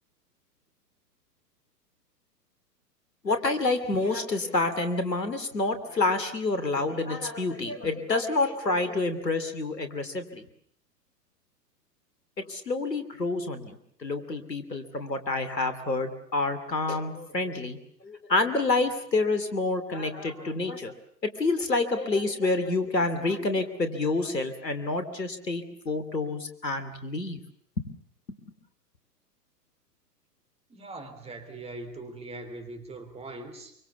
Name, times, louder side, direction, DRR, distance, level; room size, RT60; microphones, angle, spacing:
voice 1, 3.2-10.5 12.4-17.8 18.0-20.9 21.2-27.4, left 3 dB, 80° left, 9 dB, 3.0 m, -28 dB
voice 2, 30.7-33.7, right 2 dB, 10° right, 6 dB, 3.2 m, -41 dB
25.5 x 24.5 x 7.1 m, 0.67 s
figure-of-eight pair, 110°, 49 cm